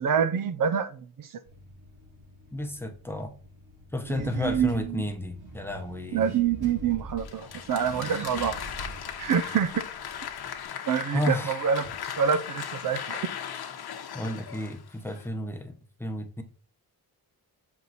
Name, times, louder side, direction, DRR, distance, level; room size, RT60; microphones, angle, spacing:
voice 1, 0.0-1.4 4.1-5.0 6.1-8.9 9.2-9.8 10.9-11.9 12.2-13.3, right 7 dB, 60° right, 0.6 m, -27 dB
Car / Accelerating revving vroom, 1.4-10.6, right 2 dB, 85° right, 2.5 m, -44 dB
voice 2, 2.5-3.3 3.9-6.3 11.1-11.6 14.1-16.4, left 1 dB, 5° left, 0.8 m, -32 dB
Applause, 7.2-15.3, left 9 dB, 80° left, 1.0 m, -38 dB
7.0 x 4.7 x 4.0 m
wide cardioid pair, 175°, 38 cm